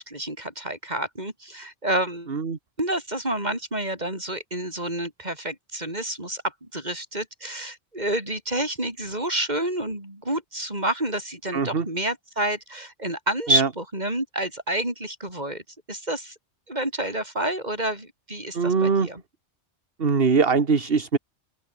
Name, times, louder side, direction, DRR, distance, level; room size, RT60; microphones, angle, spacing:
voice 1, 0.0-2.3 2.8-15.6 15.9-16.3 16.7-19.2, right 1 dB, 35° right, 6.9 m, -29 dB
voice 2, 11.5-11.9 13.5-13.7 18.5-19.1 20.0-21.2, right 5 dB, 55° right, 1.8 m, -22 dB
open air
omnidirectional pair, 1.2 m